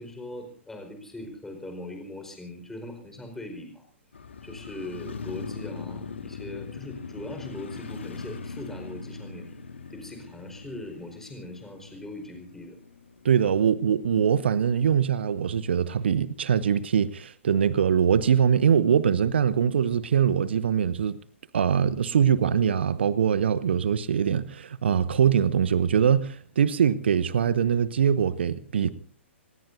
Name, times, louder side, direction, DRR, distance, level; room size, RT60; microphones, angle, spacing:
voice 1, 0.0-3.8 4.4-9.5 9.9-12.8, left 1 dB, 5° left, 4.8 m, -40 dB
Motorcycle, 4.1-14.2 14.6-14.7, left 5 dB, 65° left, 1.9 m, -40 dB
voice 2, 13.2-21.2 21.5-28.9, right 8 dB, 60° right, 1.0 m, -23 dB
26.5 x 19.5 x 2.7 m
figure-of-eight pair, 115°, 7 cm